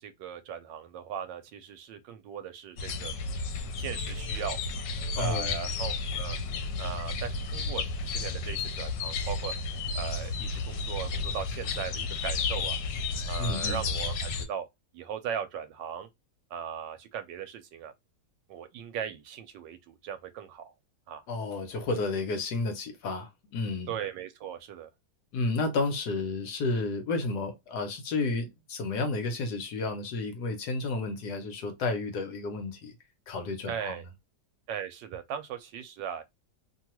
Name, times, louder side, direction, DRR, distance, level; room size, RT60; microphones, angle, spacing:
voice 1, 0.0-3.1 3.8-4.6 5.2-6.4 6.8-9.5 9.9-12.8 13.3-14.7 14.9-16.1 16.5-17.9 18.5-20.7 21.1-21.2 23.9-24.9 33.7-34.0 34.7-36.2, right 8 dB, 85° right, 1.3 m, -38 dB
sound 1, 2.8-14.5, left 3 dB, 85° left, 1.3 m, -32 dB
voice 2, 5.2-5.6 13.4-13.8 21.3-23.9 25.3-32.9 33.3-34.0, left 3 dB, 65° left, 1.2 m, -31 dB
3.1 x 2.3 x 2.8 m
omnidirectional pair, 2.0 m